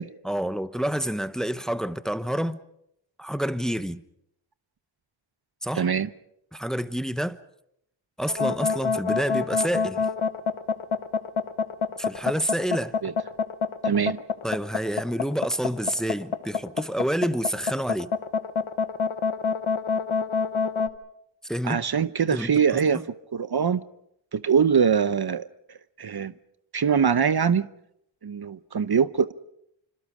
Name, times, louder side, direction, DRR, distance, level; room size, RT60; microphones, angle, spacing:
voice 1, 0.2-2.6 3.2-4.0 5.6-5.9 6.5-7.4 8.2-10.1 12.0-13.0 14.4-18.1 21.4-21.8 22.3-22.6 22.9-23.0, equal, ahead, 1.0 m, -28 dB
voice 2, 5.7-6.1 13.0-13.1 13.8-14.2 21.6-23.0 23.3-23.8 24.3-25.5 26.0-26.3 26.7-27.7 28.2-29.3, right 7 dB, 55° right, 0.9 m, -23 dB
sound 1, 8.3-20.9, left 5 dB, 80° left, 1.2 m, -26 dB
27.5 x 25.5 x 5.0 m
cardioid pair, 50°, 47 cm